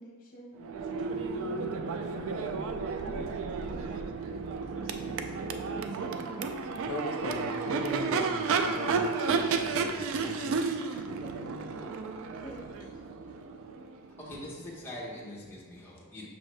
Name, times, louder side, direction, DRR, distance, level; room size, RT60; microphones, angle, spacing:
voice 1, 0.0-6.5 10.9-11.9 12.3-13.1 13.4-13.5, left 1 dB, 40° left, -3 dB, 1.0 m, -48 dB
Crowd / Race car auto racing / Accelerating revving vroom, 0.6-14.4, right 5 dB, 65° right, 0.3 m, -32 dB
voice 2, 6.8-10.8, left 2 dB, 75° left, 0 dB, 0.5 m, -39 dB
voice 3, 14.1-16.3, left 1 dB, 10° left, -6 dB, 0.9 m, -43 dB
6.0 x 2.7 x 3.2 m, 1.4 s
head